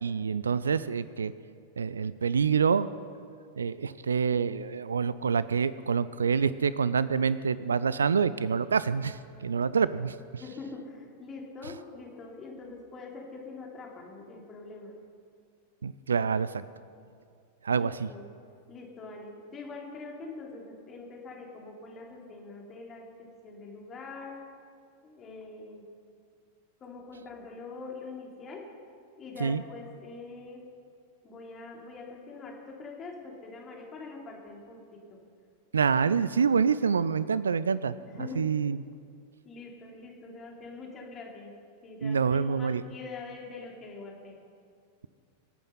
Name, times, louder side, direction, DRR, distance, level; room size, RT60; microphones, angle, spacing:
voice 1, 0.0-1.3 1.8-2.9 3.6-10.1 15.8-16.6 17.6-18.1 29.4-29.6 35.7-38.0 38.4-38.8 42.0-42.8, right 6 dB, 70° right, 16 dB, 0.4 m, -26 dB
voice 2, 10.4-14.9 17.7-18.2 18.7-24.3 25.0-25.8 26.8-28.6 29.2-30.6 31.2-35.0 38.1-38.4 39.4-41.5 41.8-42.2 42.5-44.3, left 3 dB, 25° left, -1 dB, 3.2 m, -44 dB
25.5 x 8.6 x 5.6 m, 2.3 s
figure-of-eight pair, 90°, 0 cm